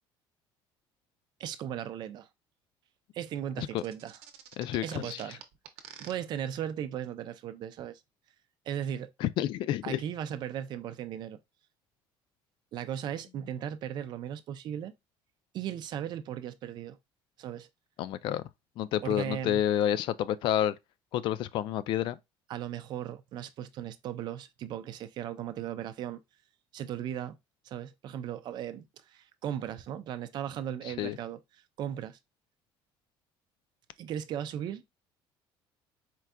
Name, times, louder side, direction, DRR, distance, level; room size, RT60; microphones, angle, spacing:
voice 1, 1.4-2.3 3.1-4.2 4.8-5.4 6.0-8.0 8.7-9.1 9.8-11.4 12.7-14.9 15.5-17.0 17.4-17.7 19.0-19.6 22.5-26.2 26.7-27.4 27.6-31.4 31.8-32.2 34.0-34.8, right 10 dB, 50° right, 0.5 m, -37 dB
sound 1, 3.8-6.1, right 10 dB, 80° right, 0.8 m, -47 dB
voice 2, 4.6-5.2 9.2-10.0 18.0-18.4 18.8-20.8 21.1-22.2 31.0-31.2, left 11 dB, 55° left, 0.3 m, -29 dB
4.5 x 3.7 x 2.2 m
cardioid pair, 150°, 10 cm